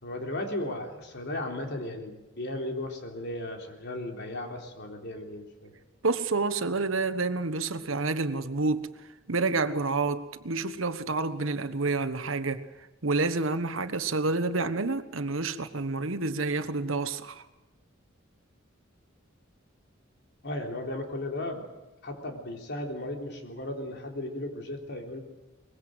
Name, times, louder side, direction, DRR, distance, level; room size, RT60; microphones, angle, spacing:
voice 1, 0.0-5.7 20.4-21.7 22.0-25.2, left 1 dB, 60° left, 3.7 m, -35 dB
voice 2, 6.0-8.9 9.3-12.7 13.0-17.4, right 3 dB, 80° right, 1.3 m, -29 dB
23.0 x 21.5 x 7.9 m
head